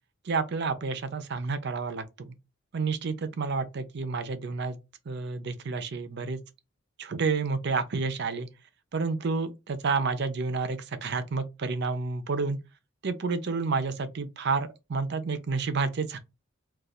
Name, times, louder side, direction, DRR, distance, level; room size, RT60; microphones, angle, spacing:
voice 1, 0.3-2.3 2.7-4.8 5.1-6.4 7.0-8.5 8.9-12.6 13.0-16.2, right 4 dB, 55° right, 0.5 m, -30 dB
2.4 x 2.3 x 4.0 m
head